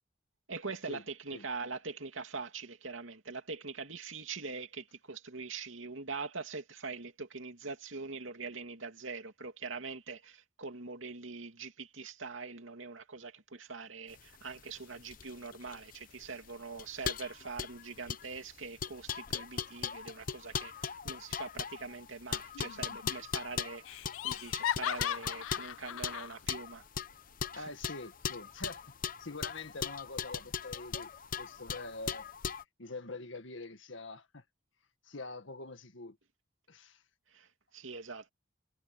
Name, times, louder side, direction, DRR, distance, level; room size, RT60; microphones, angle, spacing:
voice 1, 0.5-26.8 27.5-27.7 37.3-38.3, right 4 dB, 80° right, 2.6 m, -43 dB
sound 1, 14.2-32.6, left 7 dB, 45° left, 0.8 m, -39 dB
Laughter, 22.5-23.1 23.4-23.5 23.9-26.3, left 11 dB, 90° left, 0.3 m, -37 dB
voice 2, 27.5-28.8 29.2-31.1 31.4-32.3 32.8-34.4 35.0-36.2 36.7-37.0, left 3 dB, 75° left, 1.9 m, -44 dB
head